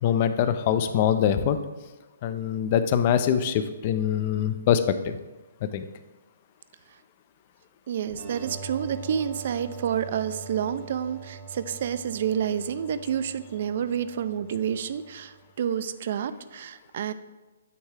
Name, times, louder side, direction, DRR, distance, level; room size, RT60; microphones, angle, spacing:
voice 1, 0.0-1.6 2.2-5.2 5.6-5.9, left 9 dB, 35° left, 11 dB, 0.4 m, -24 dB
voice 2, 7.9-17.1, right 8 dB, 50° right, 13 dB, 0.4 m, -29 dB
sound 1, 8.1-15.6, right 5 dB, 35° right, 0.9 m, -44 dB
9.3 x 3.6 x 3.3 m, 1.2 s
hypercardioid pair, 155°, 0 cm